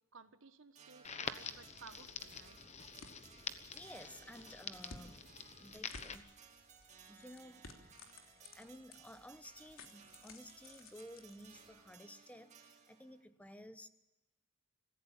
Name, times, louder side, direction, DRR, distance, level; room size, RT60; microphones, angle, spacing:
voice 1, 0.1-2.6, right 4 dB, 65° right, 10 dB, 1.5 m, -57 dB
sound 1, 0.7-13.2, right 6 dB, 35° right, 2.5 m, -61 dB
Crackle, 1.0-6.1, left 6 dB, 30° left, 1.1 m, -47 dB
sound 2, 1.7-12.0, left 3 dB, 75° left, 3.2 m, -59 dB
voice 2, 3.7-5.2 5.6-6.3 7.1-7.7 8.4-13.9, equal, 5° left, 11 dB, 1.0 m, -54 dB
26.0 x 15.5 x 7.4 m, 1.0 s
head